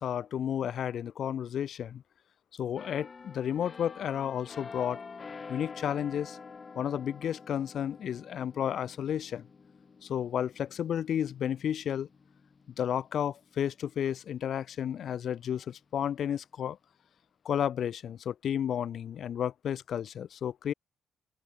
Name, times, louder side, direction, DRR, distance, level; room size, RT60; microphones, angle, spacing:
voice 1, 0.0-2.0 2.6-5.0 5.5-6.4 6.7-9.5 10.0-12.1 12.8-16.8 17.4-20.7, left 9 dB, 65° left, 3.4 m, -32 dB
sound 1, 2.8-14.3 14.7-15.0, left 5 dB, 35° left, 6.8 m, -48 dB
open air
cardioid pair, 90°, 0 cm